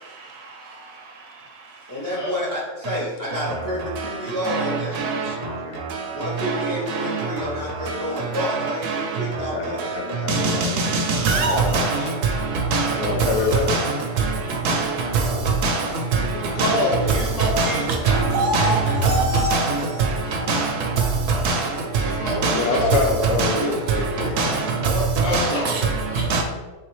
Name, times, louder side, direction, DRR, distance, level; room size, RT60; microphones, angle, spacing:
voice 1, 1.9-5.0 6.1-9.8 16.1-17.6 22.2-23.2, equal, 20° left, 0.6 m, -30 dB
voice 2, 5.1-5.8 6.8-6.9 9.4-10.8 11.5-12.1 13.0-13.7 15.3-15.5 17.8-17.9 21.0-21.4 22.5-24.6, left 4 dB, 75° left, 1.1 m, -27 dB
voice 3, 11.2-11.8 12.7-12.8 13.7-13.8 14.7-14.8 15.6-15.7 16.6-16.7 17.6-17.7 18.1-18.8 19.0-19.6 20.5-20.6 21.4-21.6 22.4-22.5 23.4-23.5 24.4-24.5 25.3-25.4 26.3-26.4, right 3 dB, 75° right, 1.1 m, -20 dB
voice 4, 16.5-17.8 22.0-22.9 24.5-26.2, left 2 dB, 35° left, 1.2 m, -28 dB
4.6 x 3.4 x 3.1 m
omnidirectional pair, 1.8 m